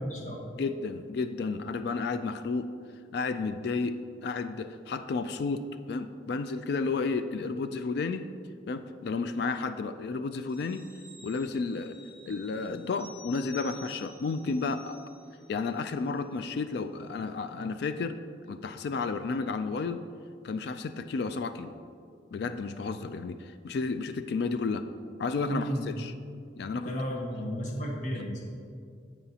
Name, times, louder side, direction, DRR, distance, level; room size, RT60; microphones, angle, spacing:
voice 1, 0.0-0.4 25.5-25.9 26.8-28.4, equal, 45° left, -1 dB, 1.3 m, -33 dB
voice 2, 0.6-2.7 3.1-8.3 8.7-10.9 11.2-12.0 12.3-15.0 15.5-18.2 18.5-20.0 20.4-21.7 22.3-24.9 25.2-26.1 26.6-26.9, left 4 dB, 65° left, 10 dB, 0.3 m, -32 dB
sound 1, 10.5-15.6 15.9-16.1, left 1 dB, 20° left, 1.4 m, -52 dB
14.5 x 5.0 x 2.8 m, 2.3 s
head